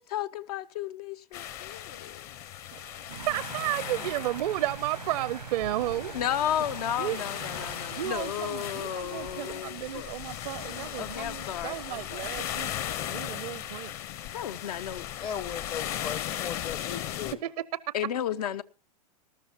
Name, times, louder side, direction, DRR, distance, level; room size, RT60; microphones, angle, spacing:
voice 1, 0.0-2.2 6.1-10.1 10.8-12.3 14.3-15.0 17.9-18.6, left 10 dB, 70° left, 0.7 m, -33 dB
sound 1, 1.3-17.3, left 11 dB, 45° left, 1.0 m, -37 dB
voice 2, 2.7-6.1 7.0-7.3 8.0-12.7 13.0-13.9 17.4-17.6, right 14 dB, 70° right, 0.6 m, -33 dB
sound 2, 3.1-9.4, right 9 dB, 90° right, 0.9 m, -43 dB
sound 3, 5.6-12.2, left 5 dB, 90° left, 6.2 m, -48 dB
voice 3, 15.2-17.4, left 8 dB, 25° left, 0.6 m, -37 dB
19.5 x 12.5 x 2.9 m
hypercardioid pair, 110°, 20 cm